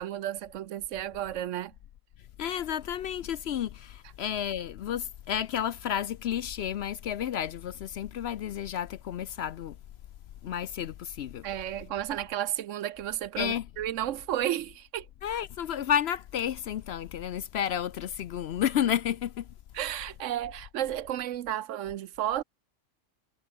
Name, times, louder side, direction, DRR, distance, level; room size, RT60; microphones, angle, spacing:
voice 1, 0.0-1.7 11.4-15.1 19.7-22.4, right 12 dB, 75° right, 1.0 m, -32 dB
voice 2, 2.4-9.8 10.4-11.5 13.4-13.7 15.2-19.5, left 10 dB, 65° left, 0.8 m, -31 dB
omnidirectional pair, 1.4 m